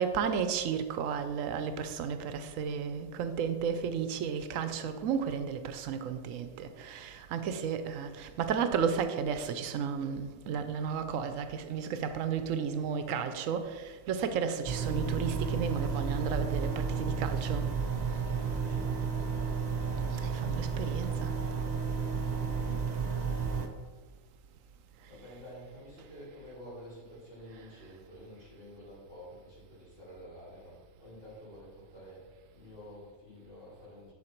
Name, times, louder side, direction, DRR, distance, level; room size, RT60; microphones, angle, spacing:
voice 1, 0.0-17.6 20.2-21.3, right 7 dB, 80° right, 1.0 m, -33 dB
sound 1, 14.7-23.7, right 5 dB, 40° right, 0.6 m, -32 dB
voice 2, 18.2-19.5 25.1-34.1, equal, 45° left, 2.9 m, -50 dB
10.5 x 4.2 x 4.4 m
omnidirectional pair, 1.4 m